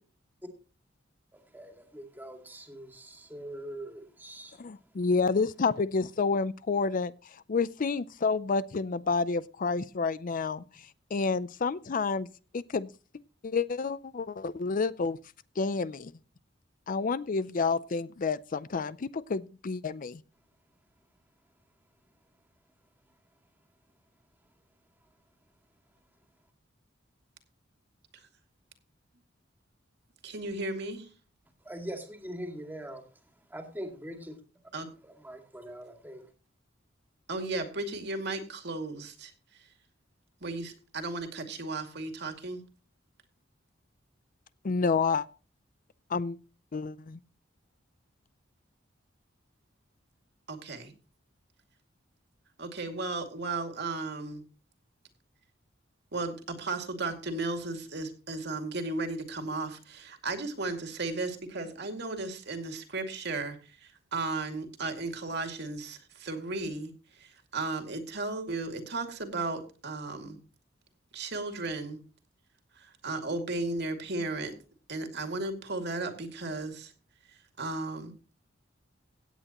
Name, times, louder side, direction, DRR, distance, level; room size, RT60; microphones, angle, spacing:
voice 1, 1.3-4.6 31.6-33.0 33.5-34.4 35.0-36.2, right 1 dB, 10° right, 2.2 m, -42 dB
voice 2, 4.6-7.1 7.5-10.6 11.1-12.3 12.5-12.9 13.4-15.2 15.6-16.1 16.9-20.2 44.6-45.3 46.1-46.4 46.7-47.2, left 4 dB, 45° left, 0.5 m, -29 dB
voice 3, 30.2-31.1 34.7-34.9 37.3-39.3 40.4-42.6 50.5-50.9 52.6-54.4 56.1-66.9 67.2-70.4 71.1-72.0 72.8-74.5 74.9-76.9 77.6-78.1, right 3 dB, 60° right, 2.3 m, -35 dB
16.5 x 8.9 x 3.0 m
head